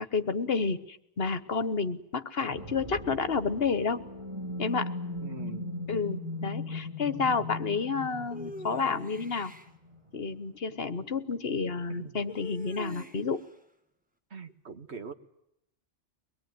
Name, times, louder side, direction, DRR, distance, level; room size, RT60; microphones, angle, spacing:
voice 1, 0.0-4.1 4.6-5.0 5.9-9.5 10.1-13.4, left 4 dB, 60° left, 12 dB, 1.4 m, -30 dB
sound 1, 2.5-10.3, left 2 dB, 25° right, 6.6 m, -39 dB
voice 2, 5.2-5.9 11.9-12.2 14.3-15.1, right 5 dB, 70° right, 7 dB, 1.9 m, -42 dB
sound 2, 8.3-9.7 12.3-13.4, left 1 dB, 5° right, 1.7 m, -43 dB
24.0 x 21.5 x 9.5 m, 0.80 s
omnidirectional pair, 1.2 m